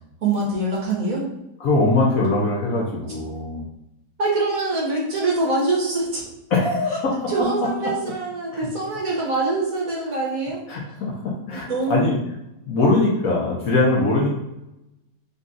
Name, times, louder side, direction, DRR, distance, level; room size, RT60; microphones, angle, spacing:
voice 1, 0.2-1.3 4.2-6.2 7.3-10.6 11.5-12.1, right 2 dB, 55° right, -4 dB, 1.3 m, -24 dB
voice 2, 1.6-3.6 6.5-7.3 7.8-7.9 10.7-12.2 12.7-14.3, left 2 dB, 60° left, -3 dB, 1.0 m, -21 dB
4.0 x 2.3 x 3.7 m, 0.89 s
omnidirectional pair, 1.9 m